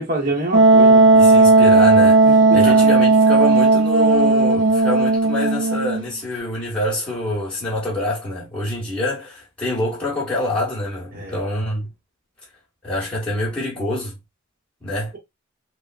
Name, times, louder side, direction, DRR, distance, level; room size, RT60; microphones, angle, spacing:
voice 1, 0.0-1.1 2.5-2.9 11.1-11.4, right 1 dB, 45° right, 1.0 m, -26 dB
Wind instrument woodwind instrument, 0.5-6.1, right 3 dB, 65° right, 0.5 m, -14 dB
voice 2, 1.1-11.9 12.8-14.2 14.8-15.1, left 1 dB, 5° left, 1.1 m, -26 dB
3.5 x 2.2 x 2.3 m
head